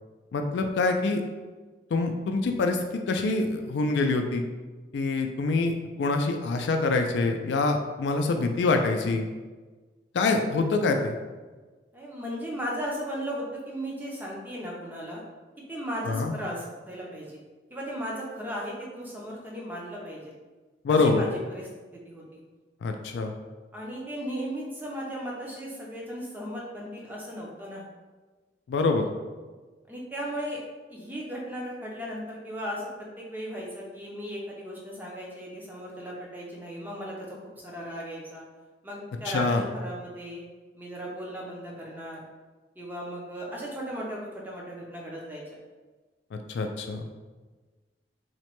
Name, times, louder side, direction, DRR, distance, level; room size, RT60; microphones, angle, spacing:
voice 1, 0.3-1.2 1.9-2.8 3.1-4.5 4.9-5.7 6.0-9.3 10.1-11.1 16.1-16.3 20.8-21.2 22.8-23.3 28.7-29.1 39.3-39.6 46.3-47.0, left 3 dB, 85° left, 4 dB, 0.3 m, -25 dB
voice 2, 11.9-15.2 15.7-17.4 17.7-20.3 20.9-21.7 21.9-22.4 23.7-27.8 29.9-30.6 30.9-37.4 37.6-38.4 38.8-40.4 40.7-42.2 42.8-45.4, equal, 10° right, -4 dB, 0.5 m, -36 dB
2.9 x 2.1 x 2.9 m, 1.3 s
head